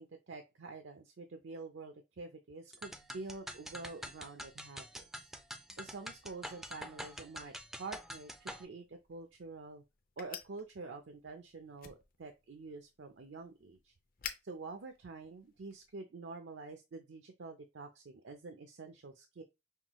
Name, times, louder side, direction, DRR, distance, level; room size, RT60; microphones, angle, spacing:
voice 1, 0.0-5.3 5.8-7.5 7.8-9.8 10.2-13.9 14.4-19.4, right 3 dB, 85° right, 6 dB, 0.5 m, -47 dB
sound 1, 2.7-8.6, equal, ahead, 0.3 m, -46 dB
sound 2, 8.8-16.0, left 8 dB, 50° left, 0.5 m, -52 dB
5.7 x 2.2 x 3.0 m, 0.23 s
head